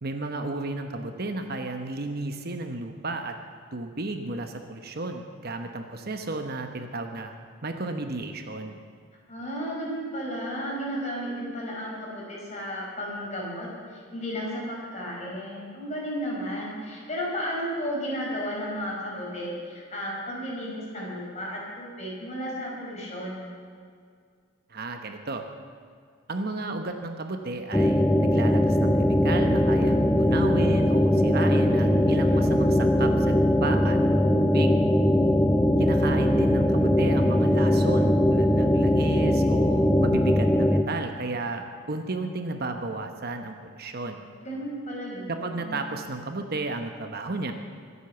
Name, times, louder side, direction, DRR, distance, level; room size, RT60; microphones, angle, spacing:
voice 1, 0.0-3.4 3.7-7.3 7.6-8.8 24.7-25.4 26.3-34.0 34.4-34.7 35.8-44.2 45.3-47.5, right 2 dB, 50° right, 6 dB, 1.0 m, -33 dB
voice 2, 9.3-23.5 44.4-45.9, equal, 35° left, -4 dB, 5.1 m, -33 dB
sound 1, 27.7-40.8, left 1 dB, 10° left, 0.6 m, -21 dB
24.0 x 8.3 x 6.9 m, 2.1 s
head